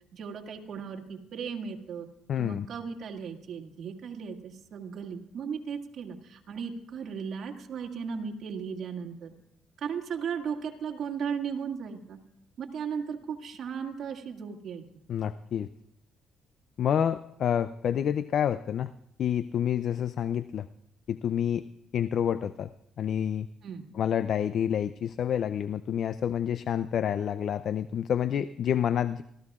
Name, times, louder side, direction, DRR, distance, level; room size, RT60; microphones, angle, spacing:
voice 1, 0.1-2.1 2.4-9.3 9.8-12.2 12.6-14.8 23.6-23.9, right 6 dB, 60° right, 0 dB, 2.1 m, -36 dB
voice 2, 2.3-2.7 15.1-15.7 16.8-18.9 19.2-20.7 21.1-21.6 21.9-22.7 23.0-23.5 24.0-29.2, left 9 dB, 65° left, 14 dB, 0.4 m, -28 dB
25.5 x 15.0 x 2.4 m, 0.75 s
cardioid pair, 85°, 0 cm